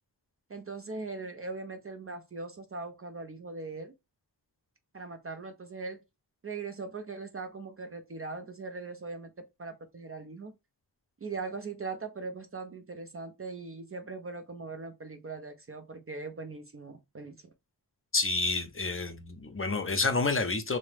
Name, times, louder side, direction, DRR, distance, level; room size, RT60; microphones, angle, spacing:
voice 1, 0.5-3.9 4.9-6.0 6.4-9.3 9.6-10.5 11.2-17.3, right 4 dB, 35° right, 0.4 m, -40 dB
voice 2, 18.1-20.8, left 3 dB, 30° left, 0.6 m, -29 dB
2.8 x 2.0 x 3.2 m
wide cardioid pair, 70°, 42 cm